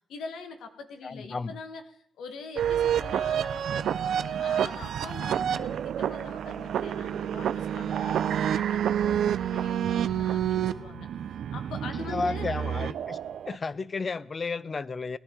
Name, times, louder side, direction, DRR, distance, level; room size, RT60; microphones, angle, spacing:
voice 1, 0.1-1.8 2.2-11.1 11.5-12.5, left 4 dB, 85° left, 1.2 m, -43 dB
voice 2, 1.0-1.5 12.0-13.2 13.5-15.2, left 4 dB, 40° left, 0.5 m, -32 dB
sound 1, 2.6-13.5, right 9 dB, 75° right, 0.4 m, -28 dB
18.0 x 11.0 x 3.7 m
cardioid pair, 80°, 0 cm